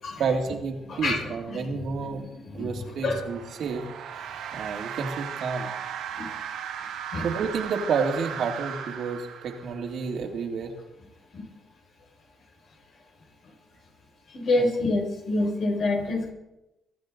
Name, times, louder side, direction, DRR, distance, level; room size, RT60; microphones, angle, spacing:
voice 1, 0.2-2.3 2.5-3.9 4.5-5.7 7.2-10.7 14.6-14.7, right 5 dB, 65° right, 3 dB, 2.7 m, -30 dB
voice 2, 0.9-1.7 2.0-2.7 3.0-3.3 6.2-6.3 7.1-7.3 11.3-11.4 14.3-16.3, left 2 dB, 60° left, 0 dB, 6.1 m, -27 dB
sound 1, 2.9-10.0, right 8 dB, 85° right, 1.9 m, -37 dB
23.0 x 13.5 x 4.0 m, 0.93 s
cardioid pair, 90°, 0 cm